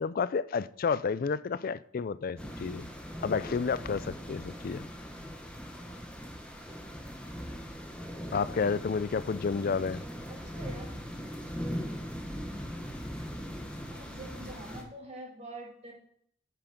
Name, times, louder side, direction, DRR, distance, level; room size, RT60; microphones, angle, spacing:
voice 1, 0.0-2.9 3.2-4.9 8.3-10.0, left 5 dB, 45° left, 0.3 m, -30 dB
sound 1, 2.4-14.8, equal, 5° left, 1.1 m, -40 dB
voice 2, 10.0-11.0 13.9-15.9, right 1 dB, 30° right, 2.5 m, -45 dB
10.0 x 6.0 x 5.1 m
head